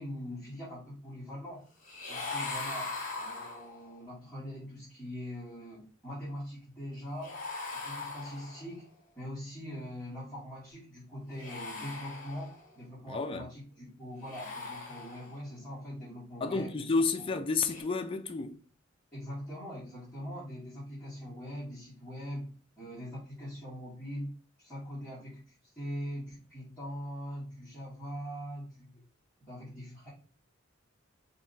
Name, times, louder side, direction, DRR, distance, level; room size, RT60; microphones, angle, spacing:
voice 1, 0.0-1.7 2.0-7.3 7.8-8.8 9.2-16.9 19.1-29.0 29.4-30.1, equal, 5° left, 1.8 m, -42 dB
sound 1, 1.8-4.0 7.2-8.8 11.3-12.8 14.1-15.5 17.6-17.8, left 3 dB, 40° left, 1.7 m, -40 dB
voice 2, 13.1-13.5 16.4-18.6, left 4 dB, 25° left, 0.4 m, -30 dB
4.4 x 3.0 x 4.0 m
head